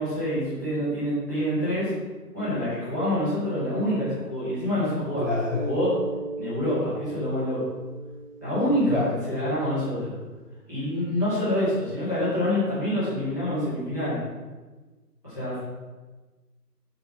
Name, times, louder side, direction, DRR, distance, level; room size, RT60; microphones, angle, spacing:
voice 1, 0.0-1.9 2.3-5.2 5.6-5.9 6.4-7.6 8.4-10.1 10.7-14.2 15.2-15.6, left 1 dB, 10° left, -15 dB, 2.4 m, -26 dB
voice 2, 5.2-5.6 8.9-9.2, left 3 dB, 45° left, -2 dB, 1.0 m, -27 dB
Mallet percussion, 5.4-9.9, right 2 dB, 20° right, 2.5 m, -37 dB
8.7 x 5.1 x 5.7 m, 1.3 s
figure-of-eight pair, 170°, 49 cm